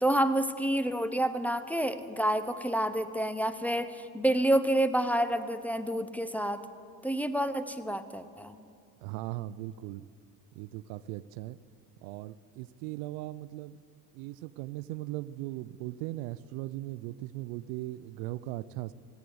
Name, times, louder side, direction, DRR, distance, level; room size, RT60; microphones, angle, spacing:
voice 1, 0.0-6.6 7.0-8.6, right 1 dB, 5° left, 8 dB, 0.6 m, -28 dB
voice 2, 9.0-10.1 10.5-11.6 12.0-13.8 14.1-18.9, right 16 dB, 80° right, 18 dB, 0.6 m, -38 dB
17.5 x 8.4 x 7.9 m, 2.3 s
supercardioid pair, 90°, 43 cm